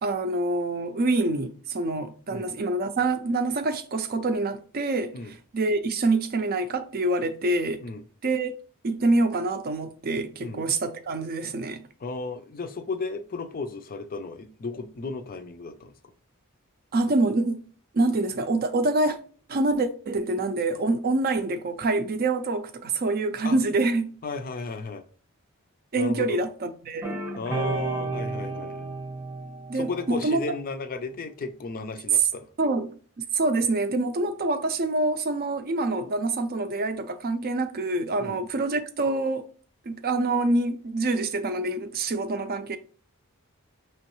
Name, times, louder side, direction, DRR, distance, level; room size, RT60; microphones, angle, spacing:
voice 1, 0.0-5.1 5.5-7.8 8.2-8.5 8.8-11.8 16.9-17.6 17.9-19.2 19.5-24.1 25.9-27.2 29.7-30.4 32.6-33.0 33.3-39.5 39.9-42.8, right 2 dB, 45° right, 0.5 m, -26 dB
voice 2, 12.0-15.9 23.4-23.6 24.2-25.0 26.0-26.4 27.4-28.9 29.7-32.5 38.2-38.4, left 3 dB, 40° left, 0.5 m, -34 dB
sound 1, 27.0-30.5, right 3 dB, 15° right, 0.8 m, -32 dB
5.4 x 3.0 x 3.0 m
head